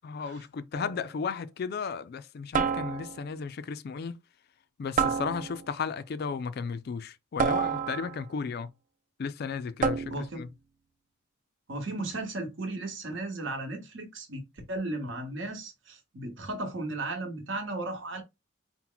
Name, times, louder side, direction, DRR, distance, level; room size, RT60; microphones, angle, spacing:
voice 1, 0.0-4.1 4.8-8.7 9.2-10.5, left 5 dB, 50° left, 0.3 m, -34 dB
sound 1, 0.7-1.1 2.5-3.3 5.0-5.8 7.4-8.3 9.8-10.4, right 6 dB, 40° right, 0.3 m, -29 dB
voice 2, 10.1-10.4 11.7-18.2, right 2 dB, 65° right, 1.1 m, -35 dB
4.3 x 2.1 x 3.8 m
head